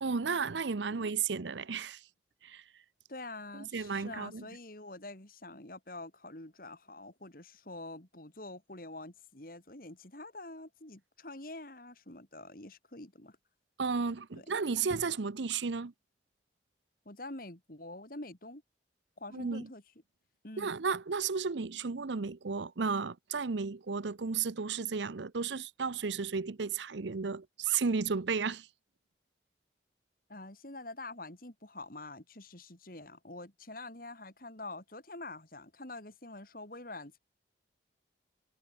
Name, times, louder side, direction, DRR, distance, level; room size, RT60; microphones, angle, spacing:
voice 1, 0.0-2.0 2.4-2.6 3.5-4.4 13.8-15.9 19.3-19.7 20.6-28.7, right 5 dB, 75° right, 0.7 m, -33 dB
voice 2, 3.1-13.4 14.3-14.5 17.0-18.6 19.2-19.8 20.4-20.7 30.3-37.2, left 2 dB, 50° left, 3.3 m, -46 dB
head